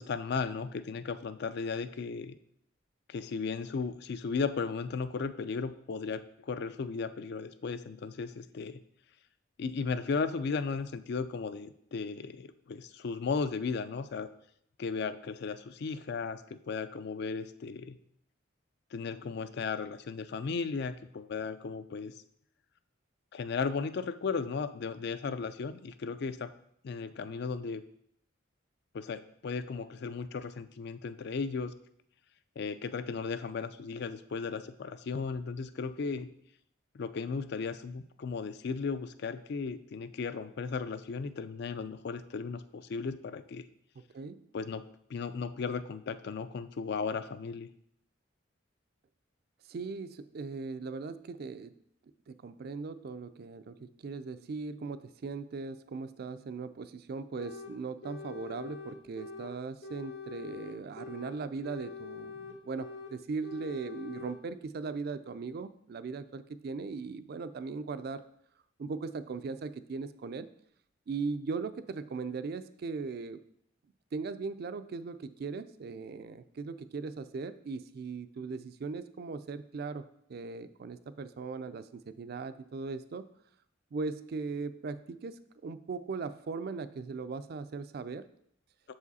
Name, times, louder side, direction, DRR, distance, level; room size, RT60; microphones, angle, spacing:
voice 1, 0.0-2.4 3.1-8.8 9.6-14.3 14.8-18.0 18.9-22.1 23.3-26.5 26.8-27.8 28.9-31.7 32.6-36.3 36.9-43.7 44.5-44.8 45.1-47.7, left 5 dB, 55° left, 13 dB, 0.4 m, -35 dB
voice 2, 44.1-44.5 49.7-51.7 52.3-68.2 68.8-70.5 71.1-73.4 74.1-80.0 80.3-83.2 83.9-88.2, right 4 dB, 55° right, 13 dB, 0.4 m, -39 dB
sound 1, 57.4-57.7 58.0-59.5 59.8-61.3 61.6-63.1 63.4-64.4, left 5 dB, 75° left, 0.9 m, -44 dB
6.9 x 4.9 x 4.1 m, 0.70 s
head